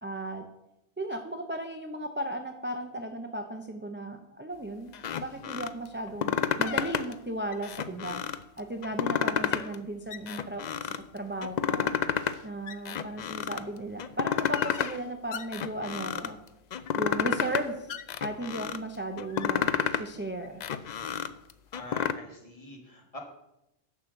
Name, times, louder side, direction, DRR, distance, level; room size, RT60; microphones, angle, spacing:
voice 1, 0.0-0.4 1.0-4.9 5.2-8.2 8.6-10.6 11.1-11.9 12.4-16.4 16.9-20.6, right 1 dB, 15° right, 5 dB, 0.5 m, -36 dB
sound 1, 4.9-5.7 6.1-7.1 7.5-8.4 8.8-9.8 10.1-11.0 11.4-12.4 12.7-13.6 14.0-15.0 15.3-16.3 16.7-17.6 17.9-18.8 19.2-20.1 20.4-22.1, left 8 dB, 55° left, 0.5 m, -30 dB
voice 2, 21.7-23.2, left 1 dB, 30° left, 1 dB, 1.7 m, -44 dB
7.2 x 6.3 x 6.6 m, 0.87 s
omnidirectional pair, 1.2 m